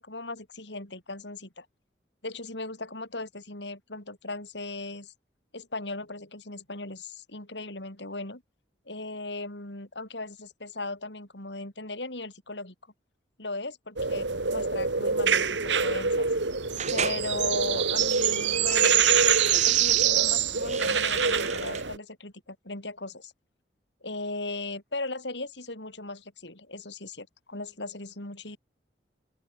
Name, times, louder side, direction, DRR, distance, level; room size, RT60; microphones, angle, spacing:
voice 1, 0.0-1.7 2.2-5.1 5.5-8.4 8.9-12.7 13.4-16.4 16.9-23.3 24.0-28.6, left 2 dB, 80° left, 6.7 m, -38 dB
sound 1, 14.0-22.0, right 7 dB, 85° right, 2.7 m, -25 dB
sound 2, 16.8-17.2 17.9-20.1 20.6-21.8, right 7 dB, 40° right, 2.5 m, -35 dB
open air
head